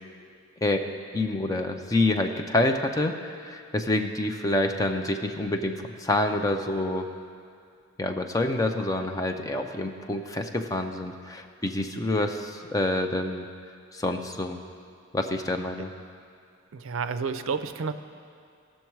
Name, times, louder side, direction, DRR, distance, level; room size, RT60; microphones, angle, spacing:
voice 1, 1.1-3.2 3.4-7.1 8.0-13.4 13.9-14.6 15.1-15.9, left 2 dB, 15° left, 5 dB, 0.5 m, -27 dB
voice 2, 16.7-17.9, right 5 dB, 75° right, 10 dB, 0.5 m, -30 dB
17.0 x 6.4 x 4.6 m, 2.3 s
head